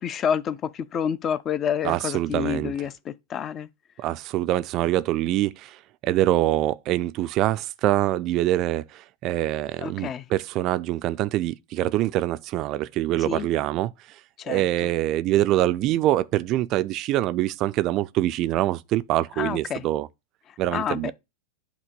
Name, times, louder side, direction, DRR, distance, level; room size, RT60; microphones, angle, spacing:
voice 1, 0.0-3.7 9.8-10.3 13.2-13.5 14.4-14.7 19.4-19.9 20.7-21.1, left 8 dB, 30° left, 0.5 m, -28 dB
voice 2, 1.8-2.7 4.0-13.9 14.5-20.1 20.6-21.1, right 14 dB, 35° right, 0.4 m, -24 dB
8.3 x 2.8 x 5.2 m
figure-of-eight pair, 90°, 0 cm